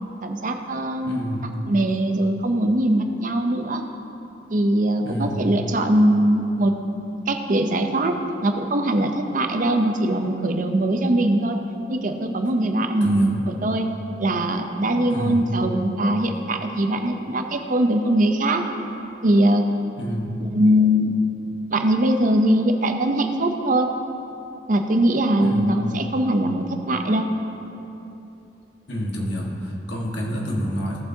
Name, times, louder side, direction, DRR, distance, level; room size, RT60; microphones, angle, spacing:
voice 1, 0.2-3.8 4.5-6.7 7.3-8.1 8.4-11.6 11.9-13.9 14.2-18.6 19.2-19.7 20.4-21.2 21.7-23.9 24.7-27.3, right 1 dB, 50° right, 5 dB, 0.7 m, -21 dB
voice 2, 1.0-1.5 5.0-5.5 13.0-13.3 15.1-15.5 20.0-20.3 25.4-25.7 28.9-31.0, equal, 85° left, -1 dB, 1.5 m, -28 dB
16.5 x 7.0 x 2.8 m, 2.9 s
head